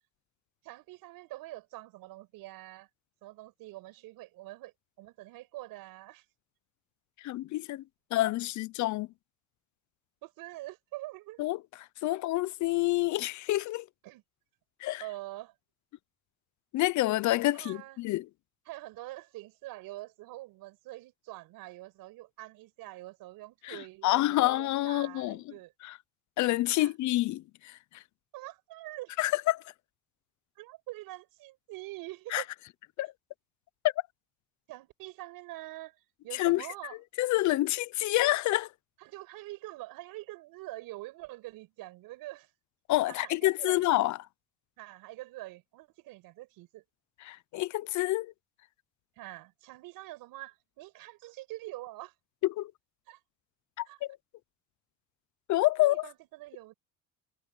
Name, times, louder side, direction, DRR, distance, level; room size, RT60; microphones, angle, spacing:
voice 1, 0.6-2.9 3.2-6.2 10.2-11.4 12.1-12.2 14.0-14.2 15.0-15.5 17.5-18.0 18.7-25.7 26.8-26.9 28.3-29.1 30.6-32.5 34.7-36.0 36.2-37.0 39.0-42.5 43.1-43.9 44.8-46.8 49.2-52.1 53.1-53.2 53.9-54.0 55.8-56.7, right 18 dB, 80° right, 6.1 m, -45 dB
voice 2, 7.2-7.8 8.1-9.1 11.4-11.6 12.0-13.9 14.8-15.0 16.7-18.2 23.6-25.4 25.8-25.9 26.4-27.8 29.2-29.6 32.3-32.4 33.0-33.1 36.3-36.7 37.2-38.7 42.9-44.2 47.2-48.3 52.4-52.7 53.8-54.1 55.5-56.1, left 17 dB, 55° left, 0.6 m, -28 dB
cardioid pair, 145°, 34 cm